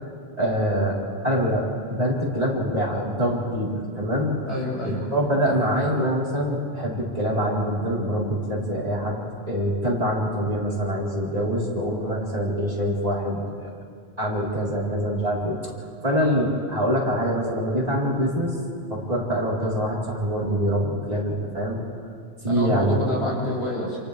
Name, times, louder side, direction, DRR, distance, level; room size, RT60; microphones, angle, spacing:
voice 1, 0.4-1.0 1.2-4.4 5.0-13.7 14.2-15.6 16.0-18.5 18.9-21.8 22.4-23.0, equal, 35° right, -5 dB, 4.5 m, -24 dB
voice 2, 4.5-5.0 22.5-24.0, left 1 dB, 80° left, -5 dB, 7.5 m, -27 dB
29.5 x 29.0 x 3.5 m, 2.3 s
omnidirectional pair, 1.1 m